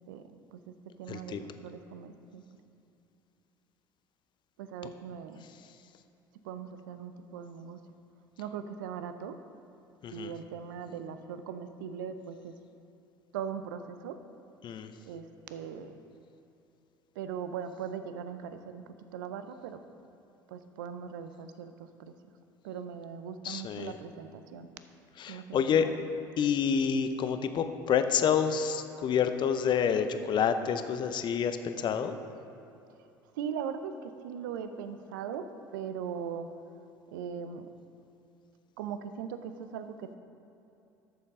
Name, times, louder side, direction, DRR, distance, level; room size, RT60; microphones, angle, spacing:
voice 1, 0.1-0.7 1.0-2.4 4.6-5.5 6.4-7.8 8.4-9.4 10.1-12.5 13.3-14.2 15.0-16.0 17.2-19.8 20.5-22.1 22.6-24.7 25.3-26.0 33.0-33.1 33.3-36.5 37.1-37.7 38.8-40.2, right 7 dB, 80° right, 10 dB, 0.5 m, -40 dB
voice 2, 1.1-1.4 10.0-10.3 14.6-14.9 23.4-23.9 25.2-25.9 26.4-32.2, left 7 dB, 45° left, 9 dB, 0.6 m, -28 dB
12.5 x 6.9 x 3.7 m, 2.7 s
hypercardioid pair, 65°, 11 cm